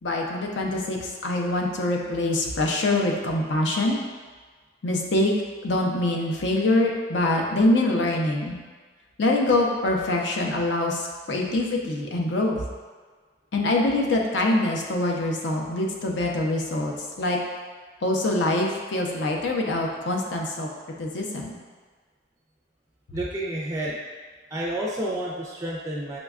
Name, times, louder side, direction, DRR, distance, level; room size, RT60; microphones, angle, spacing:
voice 1, 0.0-4.0 4.8-5.3 5.6-8.6 9.2-12.6 13.5-17.4 18.0-20.7 21.0-21.6, left 2 dB, 75° left, 0 dB, 0.5 m, -24 dB
voice 2, 23.1-24.0 24.5-26.2, right 1 dB, 15° right, -4 dB, 0.3 m, -30 dB
6.0 x 2.2 x 2.4 m, 1.5 s
head